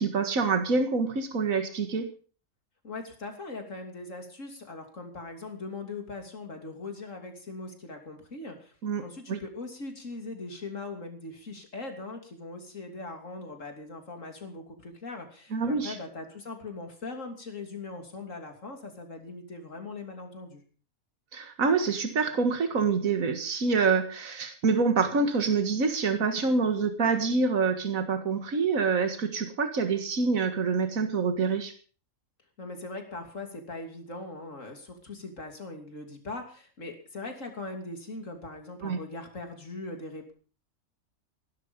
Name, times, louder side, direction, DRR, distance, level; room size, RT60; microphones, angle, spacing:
voice 1, 0.0-2.1 8.8-9.0 9.3-9.4 15.5-16.0 21.3-31.7 38.8-39.0, right 4 dB, 75° right, 7 dB, 2.1 m, -26 dB
voice 2, 2.8-20.6 32.6-40.3, left 3 dB, 65° left, 4 dB, 3.4 m, -40 dB
16.5 x 12.5 x 5.4 m, 0.40 s
omnidirectional pair, 1.5 m